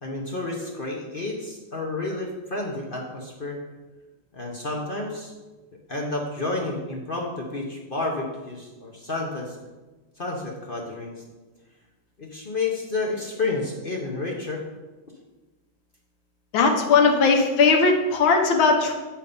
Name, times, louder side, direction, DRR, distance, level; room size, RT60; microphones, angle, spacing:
voice 1, 0.0-3.6 4.3-5.3 5.9-9.6 10.2-11.1 12.2-14.6, left 3 dB, 45° left, -1 dB, 0.7 m, -30 dB
voice 2, 16.5-18.9, left 4 dB, 80° left, 3 dB, 1.8 m, -18 dB
8.6 x 4.6 x 5.3 m, 1.2 s
omnidirectional pair, 2.1 m